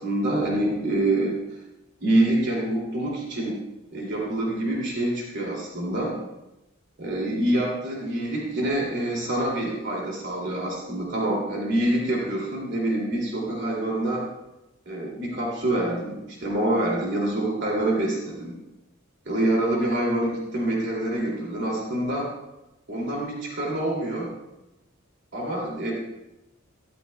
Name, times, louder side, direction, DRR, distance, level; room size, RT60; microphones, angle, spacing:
voice 1, 0.0-1.4 2.0-3.6 3.9-6.2 7.0-14.2 14.9-18.6 19.3-22.3 22.9-24.3 25.3-25.9, right 1 dB, 60° right, -3 dB, 2.5 m, -26 dB
13.5 x 12.5 x 2.2 m, 0.94 s
head